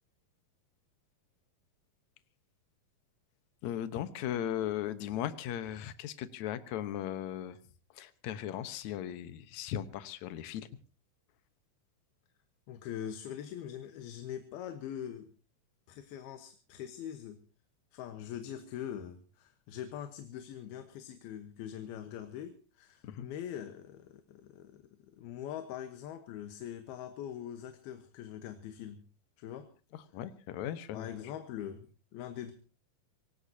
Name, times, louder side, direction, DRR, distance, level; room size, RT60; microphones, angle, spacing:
voice 1, 3.6-7.6 8.0-10.7 23.0-23.3 30.1-31.1, left 11 dB, 65° left, 12 dB, 2.1 m, -37 dB
voice 2, 12.7-15.3 15.9-17.4 17.9-29.0 29.4-29.7 30.9-32.5, left 10 dB, 85° left, 7 dB, 3.1 m, -43 dB
25.0 x 18.5 x 2.8 m, 0.34 s
omnidirectional pair, 4.3 m